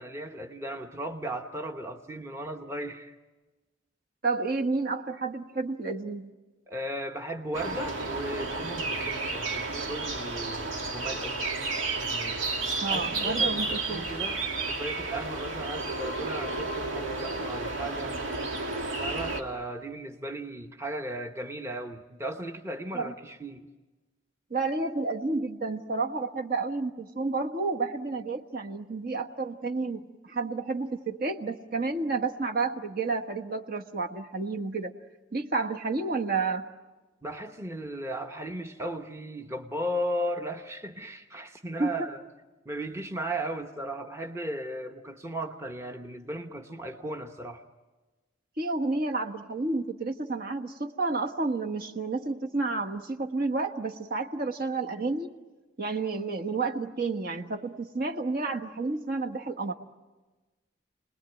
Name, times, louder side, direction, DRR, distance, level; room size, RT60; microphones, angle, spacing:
voice 1, 0.0-3.1 6.7-11.5 12.0-12.4 12.9-18.2 19.0-23.7 37.2-42.2 42.6-47.6, right 1 dB, 15° right, 1.0 m, -36 dB
voice 2, 4.2-6.3 12.8-14.1 22.9-23.1 24.5-34.9 35.3-36.7 41.8-42.1 48.6-55.3 55.8-59.7, right 3 dB, 50° right, 1.3 m, -30 dB
sound 1, 7.5-19.4, right 3 dB, 85° right, 2.3 m, -32 dB
29.5 x 20.5 x 9.1 m
head